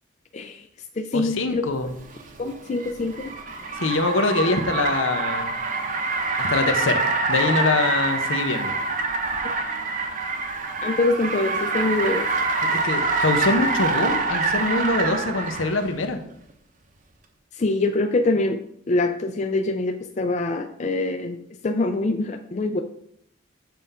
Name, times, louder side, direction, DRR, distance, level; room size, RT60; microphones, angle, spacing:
voice 1, 0.3-0.6 1.0-1.6 2.4-3.3 9.4-9.5 10.8-12.2 17.6-18.6 18.9-22.8, left 2 dB, 35° left, 6 dB, 0.4 m, -24 dB
voice 2, 1.1-1.9 3.8-5.6 6.4-8.7 12.8-16.2, left 3 dB, 75° left, 7 dB, 0.8 m, -24 dB
Car, 1.9-15.9, right 3 dB, 40° right, 0.8 m, -25 dB
7.5 x 3.6 x 5.5 m, 0.71 s
head